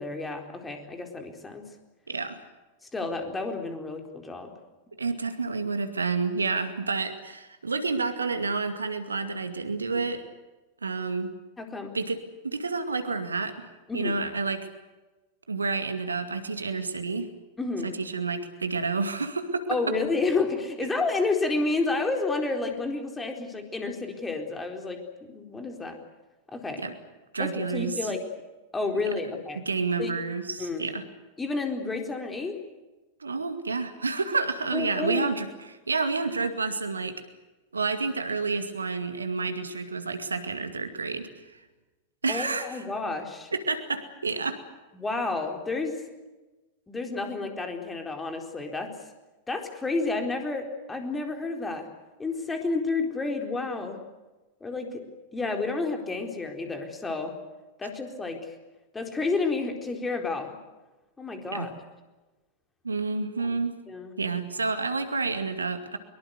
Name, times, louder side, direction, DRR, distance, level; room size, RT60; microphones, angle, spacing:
voice 1, 0.0-1.7 2.9-4.5 11.6-12.0 13.9-14.2 17.6-17.9 19.7-25.0 25.3-26.0 26.5-26.8 27.4-28.3 28.7-29.6 30.0-30.1 30.6-30.9 31.4-32.6 34.7-35.3 42.3-43.5 44.9-46.0 46.9-48.9 49.5-51.9 52.2-54.0 54.6-55.0 55.3-57.4 57.8-58.6 58.9-60.6 61.2-61.7 63.4-63.6 63.9-64.1, left 3 dB, 15° left, 4 dB, 4.2 m, -30 dB
voice 2, 2.1-2.4 5.0-10.2 10.8-11.3 11.9-13.7 13.9-14.7 15.5-17.3 17.8-19.8 20.8-20.9 26.8-26.9 27.3-27.9 29.6-31.0 33.2-37.2 37.7-41.6 42.2-42.8 43.5-44.6 61.5-61.7 62.8-63.8 64.2-66.0, right 4 dB, 75° right, 9 dB, 2.2 m, -29 dB
23.5 x 23.0 x 8.2 m, 1.1 s
figure-of-eight pair, 90°, 0 cm